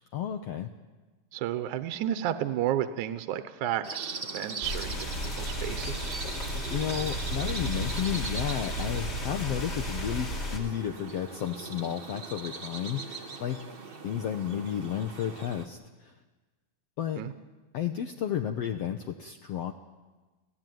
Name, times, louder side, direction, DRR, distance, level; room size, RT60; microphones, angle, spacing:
voice 1, 0.1-0.7 6.7-13.7 14.0-16.1 17.0-17.2 17.7-19.7, left 9 dB, 65° left, 5 dB, 1.7 m, -32 dB
voice 2, 1.3-6.2 17.2-17.3, right 11 dB, 75° right, 10 dB, 2.3 m, -32 dB
sound 1, 3.8-15.6, right 3 dB, 90° right, 0.5 m, -41 dB
sound 2, 4.6-10.6, equal, 30° left, 3.5 m, -33 dB
28.5 x 16.0 x 9.3 m, 1.3 s
omnidirectional pair, 3.7 m